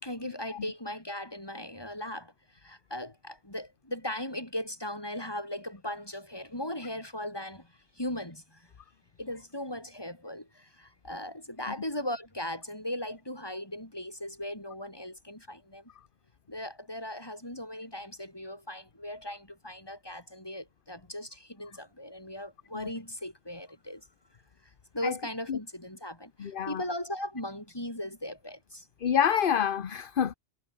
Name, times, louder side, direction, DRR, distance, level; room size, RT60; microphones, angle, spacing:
voice 1, 0.0-8.7 9.2-15.9 16.5-24.1 24.6-28.9, left 1 dB, 20° left, 5.3 m, -38 dB
voice 2, 26.4-26.8 29.0-30.3, left 8 dB, 60° left, 1.0 m, -27 dB
omnidirectional pair, 1.1 m